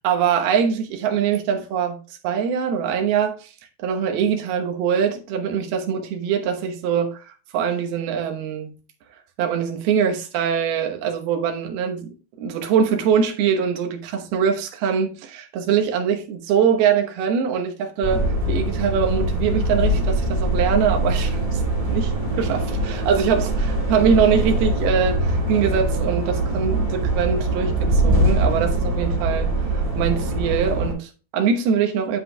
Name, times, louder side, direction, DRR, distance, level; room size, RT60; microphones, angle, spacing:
voice 1, 0.0-3.4 3.8-7.2 7.5-8.7 9.4-12.1 12.4-21.6 21.9-29.5 29.9-32.2, right 7 dB, 75° right, 3.0 m, -23 dB
sound 1, 18.0-30.9, right 1 dB, 25° right, 0.8 m, -22 dB
9.9 x 8.1 x 2.3 m
omnidirectional pair, 4.6 m